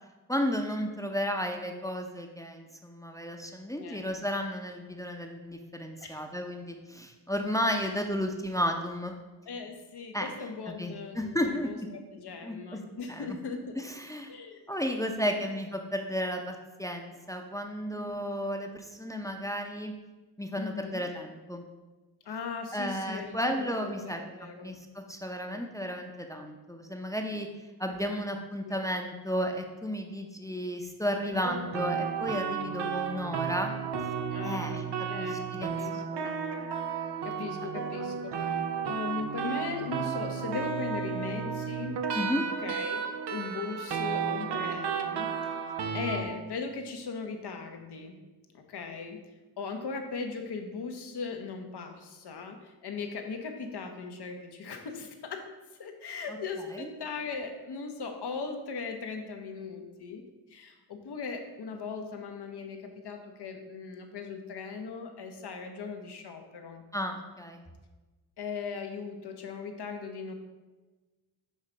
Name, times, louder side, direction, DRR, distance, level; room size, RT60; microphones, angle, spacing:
voice 1, 0.3-9.1 10.1-10.3 10.7-11.9 12.4-12.8 13.1-13.4 13.8-14.4 14.7-19.9 20.4-21.6 22.7-27.5 27.8-33.7 34.4-36.3 38.4-38.6 42.1-42.4 45.8-46.0 56.7-56.9 66.9-67.6, equal, 10° left, 3 dB, 0.7 m, -33 dB
voice 2, 9.4-13.9 14.3-14.6 15.0-15.4 17.9-18.2 20.6-21.0 22.3-24.8 27.9-28.2 28.6-28.8 31.2-31.6 34.3-36.2 37.2-42.0 42.4-45.4 45.9-48.2 48.5-49.2 49.6-55.5 55.8-60.2 60.5-66.8 68.4-70.3, left 4 dB, 75° left, 5 dB, 0.9 m, -39 dB
sound 1, 31.4-46.3, right 6 dB, 85° right, 0.6 m, -33 dB
6.5 x 3.2 x 5.0 m, 1.2 s
cardioid pair, 55°, 40 cm